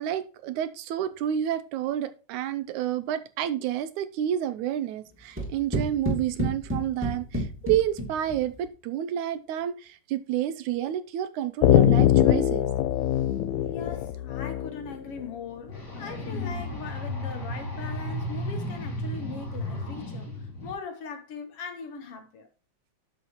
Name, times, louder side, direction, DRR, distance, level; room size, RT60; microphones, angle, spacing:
voice 1, 0.0-12.7, right 11 dB, 85° right, 2.3 m, -29 dB
sound 1, 5.4-8.6, right 1 dB, 5° right, 2.4 m, -31 dB
sound 2, 11.6-15.2, left 12 dB, 85° left, 2.0 m, -22 dB
voice 2, 13.7-22.5, left 5 dB, 60° left, 1.9 m, -40 dB
sound 3, 15.7-20.7, left 1 dB, 35° left, 3.4 m, -34 dB
10.5 x 6.8 x 3.0 m
omnidirectional pair, 3.3 m